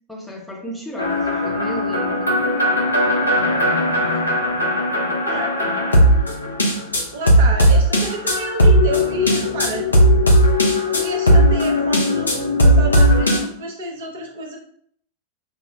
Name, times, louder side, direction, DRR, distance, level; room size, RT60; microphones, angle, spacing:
voice 1, 0.1-2.4, equal, ahead, -1 dB, 0.7 m, -33 dB
sound 1, 1.0-13.4, equal, 80° left, 0.5 m, -17 dB
voice 2, 5.3-5.7 7.1-10.3 10.7-14.6, right 2 dB, 55° right, 1 dB, 0.7 m, -30 dB
5.1 x 2.0 x 2.2 m, 0.64 s
figure-of-eight pair, 90°, 0 cm